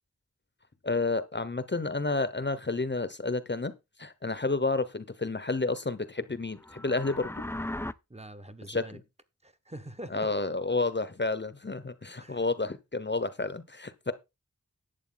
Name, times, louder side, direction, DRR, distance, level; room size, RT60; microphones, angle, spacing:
voice 1, 0.8-3.7 4.0-7.4 8.6-9.0 10.1-14.1, left 3 dB, 35° left, 1.0 m, -30 dB
sound 1, 6.5-7.9, left 1 dB, 10° left, 0.5 m, -37 dB
voice 2, 8.1-9.0 9.4-10.3 12.2-12.4, right 1 dB, 20° right, 1.2 m, -44 dB
11.5 x 8.2 x 3.9 m
wide cardioid pair, 70°, 30 cm